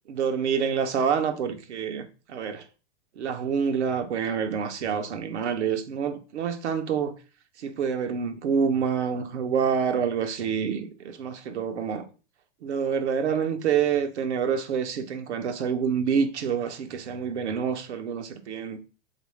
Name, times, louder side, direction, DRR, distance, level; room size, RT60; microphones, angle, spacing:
voice 1, 0.1-2.6 3.2-7.1 7.6-12.0 12.6-18.8, right 7 dB, 90° right, 0.7 m, -27 dB
3.4 x 2.5 x 3.1 m
hypercardioid pair, 120°, 33 cm